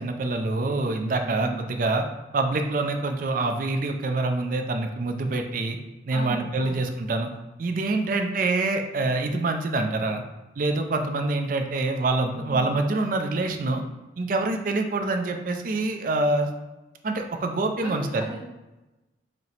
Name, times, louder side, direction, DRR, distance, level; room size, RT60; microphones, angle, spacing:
voice 1, 0.0-2.0 2.3-5.8 6.1-7.3 7.6-10.2 10.6-13.8 14.2-16.5 17.0-18.3, right 2 dB, 45° right, 5 dB, 0.4 m, -26 dB
voice 2, 1.2-1.6 6.1-6.8 12.3-12.7 17.8-18.5, right 1 dB, 10° right, -9 dB, 0.6 m, -37 dB
4.3 x 2.0 x 3.9 m, 1.0 s
head